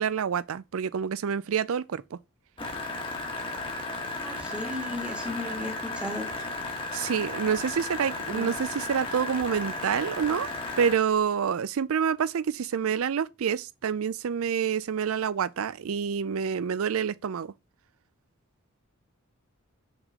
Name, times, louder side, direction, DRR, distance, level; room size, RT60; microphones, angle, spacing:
voice 1, 0.0-2.2 6.9-10.5 10.8-17.5, right 7 dB, 70° right, 0.4 m, -27 dB
sound 1, 2.6-11.0, left 2 dB, 25° left, 1.4 m, -34 dB
voice 2, 4.2-6.3 8.3-8.5, left 1 dB, 5° right, 1.3 m, -35 dB
6.0 x 4.1 x 4.8 m
head